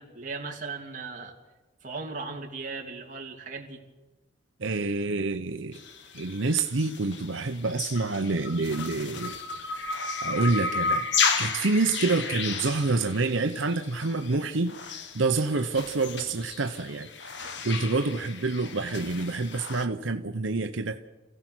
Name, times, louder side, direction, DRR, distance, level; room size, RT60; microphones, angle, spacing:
voice 1, 0.0-1.3 1.8-3.8 12.0-12.4, right 4 dB, 40° right, 1 dB, 2.8 m, -38 dB
voice 2, 4.6-5.8 6.1-9.4 9.8-11.1 11.4-21.1, right 3 dB, 85° right, 7 dB, 0.9 m, -28 dB
sound 1, 5.7-19.9, left 5 dB, 65° left, 1.3 m, -33 dB
28.0 x 16.0 x 6.3 m, 1.1 s
head